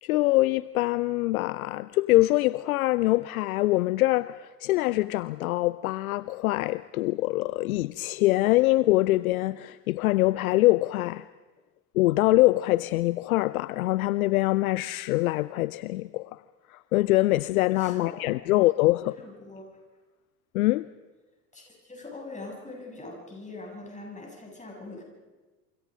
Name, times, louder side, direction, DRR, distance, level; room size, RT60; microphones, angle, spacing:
voice 1, 0.0-11.2 11.9-16.3 16.7-19.1 20.5-20.9, left 18 dB, 60° left, 0.7 m, -24 dB
voice 2, 17.7-18.6 19.2-19.8 21.5-25.0, left 2 dB, 15° left, 7.8 m, -43 dB
27.5 x 25.0 x 5.3 m
figure-of-eight pair, 65°, 47 cm